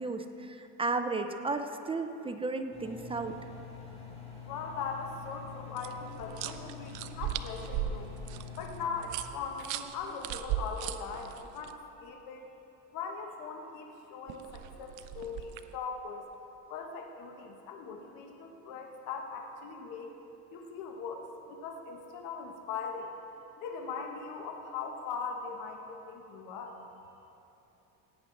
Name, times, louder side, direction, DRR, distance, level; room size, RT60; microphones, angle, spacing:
voice 1, 0.0-3.4, right 3 dB, 15° right, 7 dB, 0.6 m, -34 dB
Engine, 2.7-8.9, left 5 dB, 20° left, 2.0 m, -46 dB
voice 2, 4.5-8.2 8.6-12.5 12.9-16.2 16.7-20.1 20.5-23.1 23.6-26.8, left 5 dB, 70° left, 2 dB, 1.3 m, -40 dB
sound 1, 5.8-11.7 14.3-15.8, right 10 dB, 65° right, 0.6 m, -38 dB
16.5 x 9.2 x 3.9 m, 3.0 s
cardioid pair, 120°, 33 cm